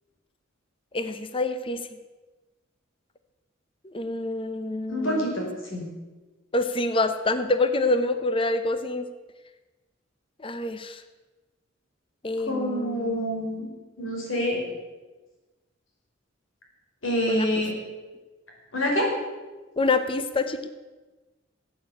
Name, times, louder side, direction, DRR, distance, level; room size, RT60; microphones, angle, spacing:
voice 1, 0.9-1.8 3.8-5.3 6.5-9.1 10.4-11.0 12.2-13.3 17.3-17.5 19.8-20.7, left 2 dB, 25° left, 10 dB, 0.7 m, -26 dB
voice 2, 4.9-5.8 12.5-13.7 14.0-14.6 17.0-17.7 18.7-19.0, equal, 85° left, -2 dB, 5.4 m, -27 dB
14.5 x 8.7 x 8.4 m, 1.2 s
head